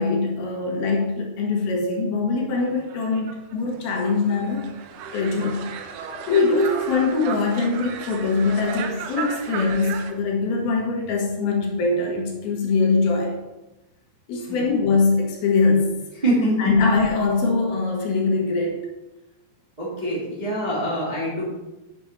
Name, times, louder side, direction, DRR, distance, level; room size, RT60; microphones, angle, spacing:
voice 1, 0.0-4.7 5.1-5.6 6.3-13.4 14.3-16.0 16.6-18.8, left 3 dB, 75° left, 0 dB, 3.1 m, -22 dB
sound 1, 2.7-10.1, right 6 dB, 90° right, 2.7 m, -35 dB
voice 2, 16.2-16.7 19.8-21.4, right 1 dB, 20° right, -7 dB, 1.3 m, -24 dB
9.0 x 7.0 x 3.3 m, 1.0 s
omnidirectional pair, 4.6 m